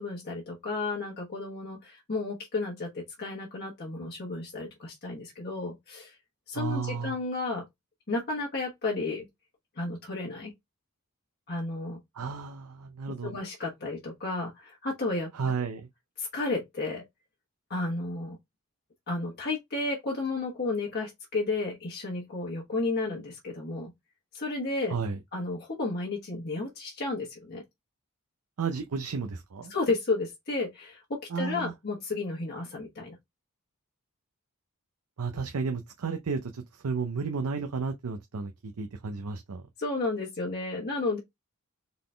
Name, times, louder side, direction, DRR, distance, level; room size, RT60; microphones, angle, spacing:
voice 1, 0.0-6.1 6.5-7.6 8.1-9.3 9.8-10.5 11.5-12.0 13.2-15.3 16.2-17.0 17.7-18.4 19.1-23.9 24.3-25.0 25.3-27.6 29.7-33.1 39.8-41.2, left 3 dB, 45° left, 1.2 m, -32 dB
voice 2, 6.5-7.2 12.1-13.3 15.3-15.9 24.9-25.2 28.6-29.7 31.3-31.7 35.2-39.6, right 5 dB, 85° right, 0.6 m, -33 dB
4.0 x 3.8 x 3.3 m
head